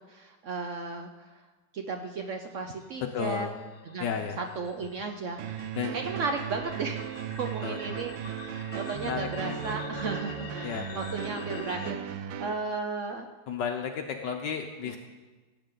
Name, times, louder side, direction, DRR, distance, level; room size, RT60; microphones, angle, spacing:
voice 1, 0.1-1.1 1.7-3.5 3.9-5.6 5.9-13.3 14.9-15.0, right 4 dB, 65° right, 5 dB, 0.7 m, -35 dB
sound 1, 2.6-11.9, left 4 dB, 50° left, 1.3 m, -44 dB
voice 2, 3.1-3.5 4.0-4.4 5.7-5.9 7.6-8.0 9.0-9.6 10.6-10.9 13.5-15.0, left 7 dB, 75° left, 4 dB, 1.3 m, -33 dB
sound 2, 5.4-12.5, right 10 dB, 85° right, 1.3 m, -37 dB
16.5 x 8.2 x 3.8 m, 1.3 s
omnidirectional pair, 2.0 m